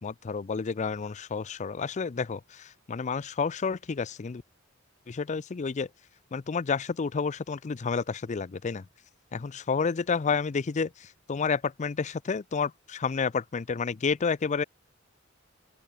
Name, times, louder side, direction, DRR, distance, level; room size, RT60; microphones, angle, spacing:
voice 1, 0.0-4.4 5.1-5.9 6.3-8.8 9.3-14.6, left 5 dB, 35° left, 0.4 m, -30 dB
open air
head